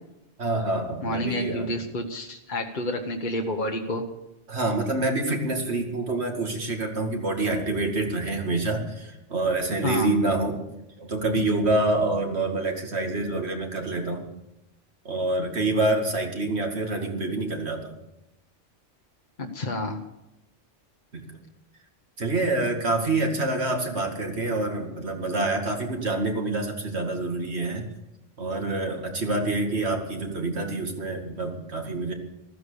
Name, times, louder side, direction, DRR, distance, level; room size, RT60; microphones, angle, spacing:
voice 1, 0.4-1.7 4.5-10.6 11.0-14.3 15.0-18.0 21.1-21.2 22.2-27.9 28.4-32.1, right 2 dB, 60° right, 3 dB, 2.5 m, -27 dB
voice 2, 1.0-4.0 9.8-10.1 19.4-20.0, left 1 dB, 40° left, 3 dB, 1.2 m, -29 dB
15.0 x 13.5 x 6.9 m, 0.90 s
omnidirectional pair, 1.3 m